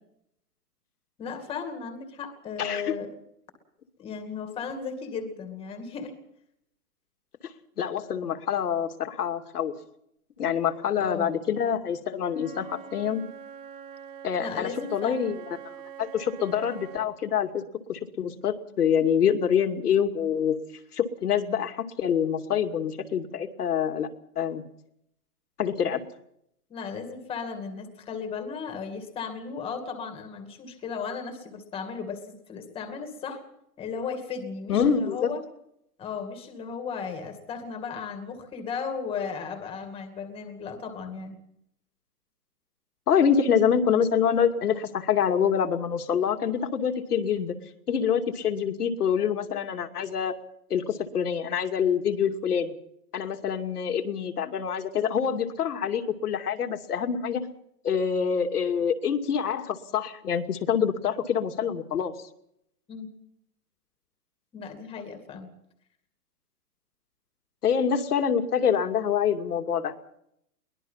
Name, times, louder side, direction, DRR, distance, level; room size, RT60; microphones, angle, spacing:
voice 1, 1.2-3.1 4.0-6.1 11.0-11.3 14.4-15.3 26.7-33.4 33.8-35.4 36.0-41.4 62.9-63.1 64.5-65.5, left 5 dB, 10° left, 6 dB, 2.4 m, -35 dB
voice 2, 2.6-3.0 7.4-9.7 10.4-13.2 14.2-17.6 17.9-20.6 20.9-24.1 24.4-24.6 25.6-26.0 34.7-35.3 43.1-47.6 47.9-50.4 50.7-52.7 53.1-57.5 57.8-62.1 67.6-69.9, left 7 dB, 75° left, 6 dB, 2.6 m, -26 dB
Wind instrument woodwind instrument, 12.3-17.1, right 8 dB, 35° right, 2.0 m, -44 dB
22.5 x 20.0 x 5.7 m, 0.75 s
hypercardioid pair, 165°, 47 cm